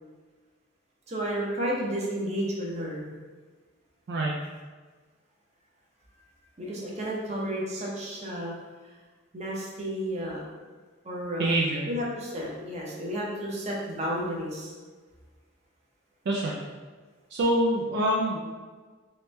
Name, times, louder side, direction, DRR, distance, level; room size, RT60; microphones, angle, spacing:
voice 1, 1.1-3.1 6.6-8.5 9.3-10.4 11.0-11.5 11.9-14.7, equal, 30° right, -4 dB, 0.7 m, -32 dB
voice 2, 11.4-11.9 16.3-16.6 17.3-18.4, right 1 dB, 55° right, -3 dB, 0.4 m, -25 dB
3.1 x 3.0 x 3.2 m, 1.4 s
head